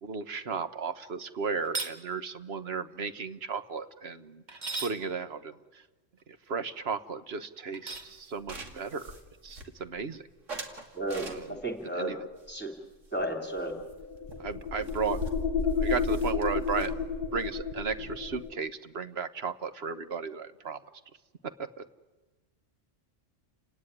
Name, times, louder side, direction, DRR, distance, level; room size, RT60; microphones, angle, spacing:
voice 1, 0.0-5.8 6.3-9.2 9.4-10.3 11.2-11.6 11.9-12.3 14.4-15.2 15.8-16.9 17.3-20.8 21.8-21.9, right 5 dB, 55° right, 11 dB, 1.3 m, -35 dB
sound 1, 1.6-2.0 4.5-5.0 7.7-8.1, right 3 dB, 35° right, 1.7 m, -35 dB
sound 2, 7.9-10.0 10.5-11.8 12.4-13.6 13.9-14.0 14.3-14.4 14.6-18.5, right 1 dB, 75° right, 2.8 m, -45 dB
voice 2, 10.9-11.4 11.6-12.1 12.5-12.7 13.1-13.7, right 1 dB, 10° left, 3 dB, 3.4 m, -32 dB
sound 3, 13.7-18.6, left 5 dB, 50° left, 1.5 m, -31 dB
29.5 x 18.0 x 9.9 m, 1.2 s
omnidirectional pair, 1.3 m